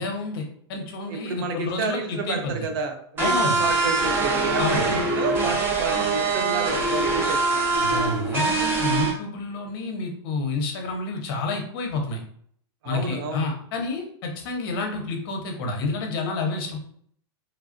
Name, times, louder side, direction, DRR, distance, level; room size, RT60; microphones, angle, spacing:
voice 1, 0.0-2.6 3.2-3.6 4.6-4.8 7.8-12.2 12.8-16.8, left 3 dB, 50° left, 3 dB, 0.8 m, -29 dB
voice 2, 1.1-7.7 12.8-13.5, right 4 dB, 50° right, 4 dB, 0.7 m, -30 dB
sound 1, 3.2-9.1, right 3 dB, 15° right, 0.7 m, -23 dB
3.2 x 2.3 x 2.5 m, 0.63 s
supercardioid pair, 155°, 15 cm